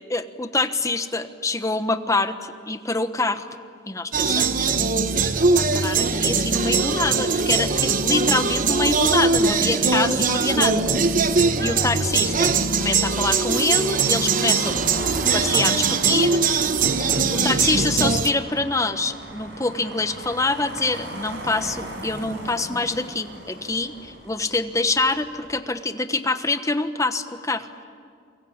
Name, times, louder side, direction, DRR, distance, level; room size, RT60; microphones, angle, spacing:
voice 1, 0.1-3.5 3.9-4.7 5.2-11.1 11.6-12.5 12.8-14.8 15.3-27.7, left 3 dB, 20° left, 9 dB, 1.2 m, -25 dB
sound 1, 4.1-18.3, right 4 dB, 50° right, 1.2 m, -21 dB
Motor vehicle (road), 7.4-25.6, right 1 dB, 80° right, 6.2 m, -39 dB
29.5 x 23.0 x 8.8 m, 2.2 s
head